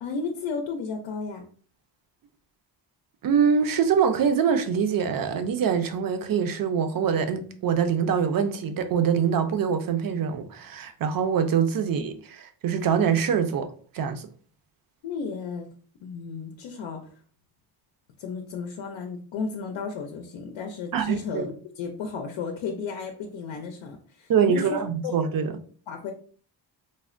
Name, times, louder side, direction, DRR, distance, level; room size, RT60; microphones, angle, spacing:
voice 1, 0.0-1.4 11.8-12.1 15.0-15.7 16.0-17.1 18.2-25.1 25.9-26.1, left 5 dB, 90° left, 0.5 m, -34 dB
voice 2, 3.2-13.7 13.9-14.3 20.9-21.5 24.3-25.5, right 7 dB, 50° right, 0.5 m, -24 dB
3.3 x 2.1 x 2.4 m
cardioid pair, 105°, 45 cm